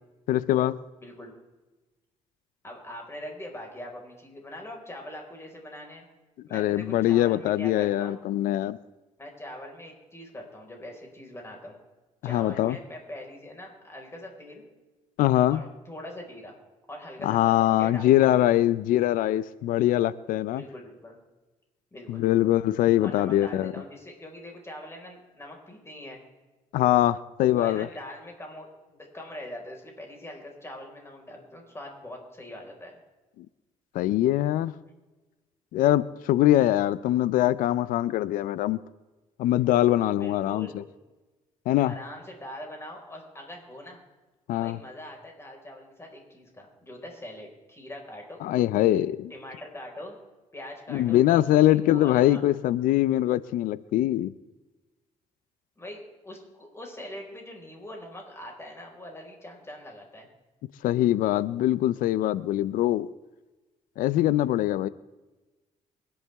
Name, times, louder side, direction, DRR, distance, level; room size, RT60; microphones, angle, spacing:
voice 1, 0.3-0.8 6.5-8.8 12.2-12.8 15.2-15.6 17.2-20.6 22.1-23.7 26.7-27.9 33.4-33.5 33.9-34.7 35.7-38.8 39.4-40.7 41.7-41.9 44.5-44.8 48.4-49.3 50.9-54.3 60.8-63.1 64.0-64.9, left 14 dB, 85° left, 0.5 m, -23 dB
voice 2, 1.0-1.3 2.6-6.0 6.5-8.2 9.2-11.8 12.2-14.6 15.5-16.6 16.9-18.4 20.5-21.2 21.9-22.6 23.0-26.2 27.6-33.0 36.4-36.7 40.2-40.8 41.8-44.0 44.6-48.4 49.3-50.2 50.5-52.4 55.8-60.3, left 1 dB, 20° left, 4.9 m, -42 dB
24.5 x 11.0 x 3.5 m
cardioid pair, 75°, 14 cm